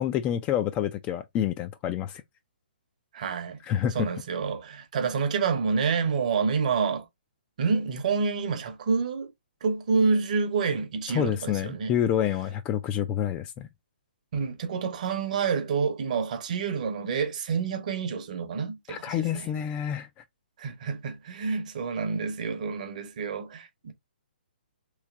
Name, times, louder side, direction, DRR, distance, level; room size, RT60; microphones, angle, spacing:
voice 1, 0.0-2.2 3.7-4.1 11.1-13.7 18.9-20.1, left 10 dB, 20° left, 0.3 m, -28 dB
voice 2, 3.1-3.6 3.9-7.1 7.6-9.3 9.6-11.9 14.3-19.5 20.6-23.9, right 5 dB, 50° right, 0.9 m, -28 dB
3.2 x 2.8 x 3.5 m
figure-of-eight pair, 130°, 5 cm